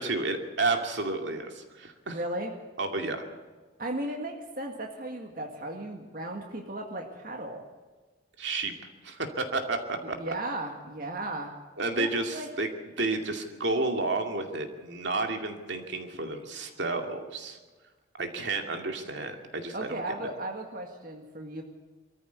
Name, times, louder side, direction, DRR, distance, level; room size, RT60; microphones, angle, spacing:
voice 1, 0.0-2.2 2.8-3.2 8.4-8.7 9.0-9.8 10.1-10.2 11.8-12.7 13.0-17.6 18.2-20.3, right 3 dB, 70° right, 4 dB, 2.4 m, -31 dB
voice 2, 2.1-2.5 3.8-7.6 10.0-11.5 12.0-12.5 19.7-21.6, right 1 dB, 50° right, 2 dB, 1.9 m, -36 dB
23.5 x 14.5 x 8.2 m, 1.3 s
head